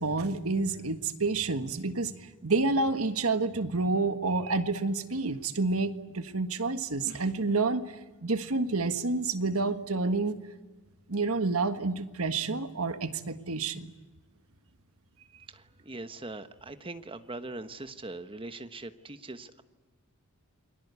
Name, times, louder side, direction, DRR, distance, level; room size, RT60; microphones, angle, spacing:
voice 1, 0.0-2.1 2.4-8.0 8.2-10.4 11.1-13.9, right 3 dB, 75° right, 9 dB, 1.6 m, -29 dB
voice 2, 15.5-19.6, right 2 dB, 25° right, 9 dB, 1.2 m, -41 dB
29.0 x 22.5 x 8.4 m, 1.3 s
head